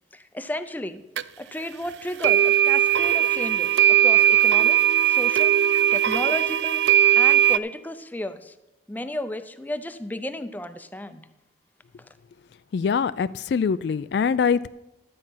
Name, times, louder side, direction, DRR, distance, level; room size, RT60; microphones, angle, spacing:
voice 1, 0.1-1.0 1.4-4.8 5.1-5.5 5.9-6.8 7.1-8.5 8.9-11.3, left 1 dB, 10° left, 10 dB, 0.5 m, -33 dB
sound 1, 1.2-1.3 2.2-7.6, right 11 dB, 75° right, 0.4 m, -19 dB
voice 2, 12.7-14.7, left 6 dB, 70° left, 16 dB, 0.3 m, -23 dB
12.0 x 8.6 x 5.7 m, 0.95 s
head